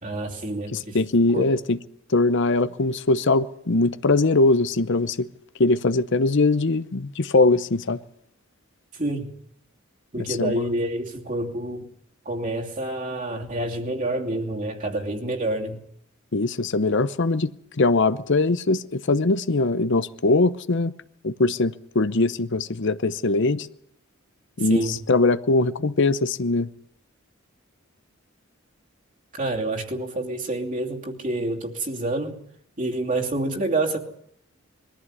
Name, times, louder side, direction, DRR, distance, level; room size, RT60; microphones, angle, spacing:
voice 1, 0.0-1.0 1.3-1.4 9.0-9.3 10.1-11.9 12.2-15.8 24.7-25.0 29.3-32.4 32.8-34.0, right 2 dB, 40° right, 2.8 m, -28 dB
voice 2, 0.7-1.8 2.1-5.3 5.6-8.0 10.2-10.7 16.3-17.5 17.8-20.9 21.2-23.7 24.6-26.7, left 3 dB, 60° left, 0.8 m, -21 dB
22.5 x 14.5 x 9.7 m
head